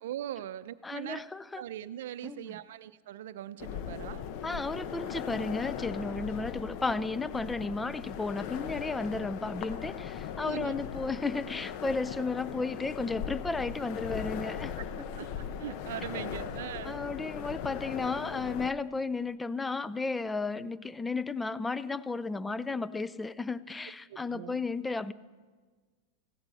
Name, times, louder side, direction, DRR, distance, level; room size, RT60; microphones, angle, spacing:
voice 1, 0.0-1.2 1.5-4.2 10.4-10.8 15.2-17.0 24.1-24.6, right 12 dB, 70° right, 15 dB, 0.5 m, -40 dB
voice 2, 0.8-1.6 2.2-2.6 4.4-14.7 16.8-25.1, left 3 dB, 10° left, 17 dB, 0.5 m, -33 dB
sound 1, 3.6-18.7, left 8 dB, 55° left, 0.9 m, -39 dB
16.5 x 15.5 x 4.1 m, 1.5 s
hypercardioid pair, 115°, 0 cm